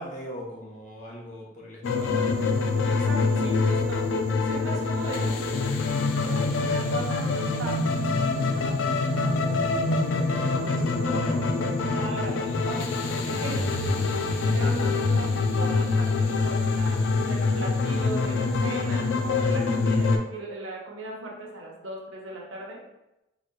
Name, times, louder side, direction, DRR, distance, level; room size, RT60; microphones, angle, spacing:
voice 1, 0.0-2.8, equal, 40° left, -3 dB, 0.8 m, -40 dB
sound 1, 1.8-20.2, left 3 dB, 85° left, 0.4 m, -25 dB
voice 2, 2.8-4.1 4.4-5.7 6.1-9.8 10.4-13.8 14.5-22.8, right 2 dB, 85° right, -1 dB, 0.8 m, -38 dB
3.9 x 2.9 x 2.2 m, 0.92 s
head